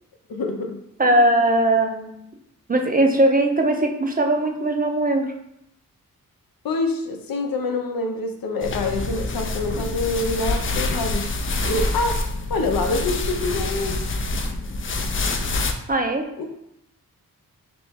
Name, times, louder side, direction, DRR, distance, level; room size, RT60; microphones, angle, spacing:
voice 1, 0.3-1.2 6.6-11.4 11.6-12.2 12.5-14.0 16.4-16.5, left 2 dB, 75° left, 3 dB, 0.6 m, -26 dB
voice 2, 1.0-2.2 2.7-5.3 15.9-16.3, right 1 dB, 25° right, 3 dB, 0.4 m, -19 dB
sound 1, 8.6-15.7, left 2 dB, 35° left, 0.4 m, -26 dB
3.3 x 3.0 x 3.4 m, 0.78 s
wide cardioid pair, 90°, 35 cm